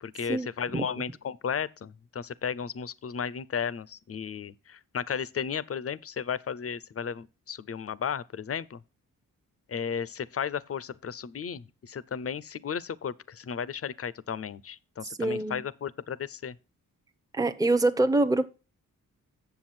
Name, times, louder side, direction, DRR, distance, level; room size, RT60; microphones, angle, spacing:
voice 1, 0.0-8.8 9.7-16.6, left 7 dB, 40° left, 0.6 m, -34 dB
voice 2, 15.2-15.6 17.3-18.5, right 2 dB, 10° right, 0.8 m, -24 dB
7.8 x 7.0 x 4.3 m
cardioid pair, 55°, 35 cm